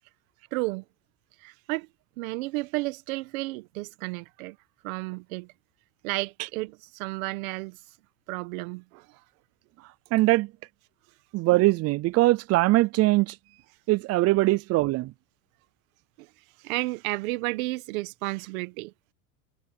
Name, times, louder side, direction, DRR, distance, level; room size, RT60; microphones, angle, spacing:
voice 1, 0.5-0.8 1.4-1.9 2.2-4.6 4.8-5.5 6.0-8.0 8.3-9.2 16.2-16.3 16.6-18.9, right 22 dB, 70° right, 1.6 m, -32 dB
voice 2, 10.1-10.5 11.3-13.3 13.9-15.1, right 19 dB, 35° right, 0.5 m, -21 dB
supercardioid pair, 110°, 43 cm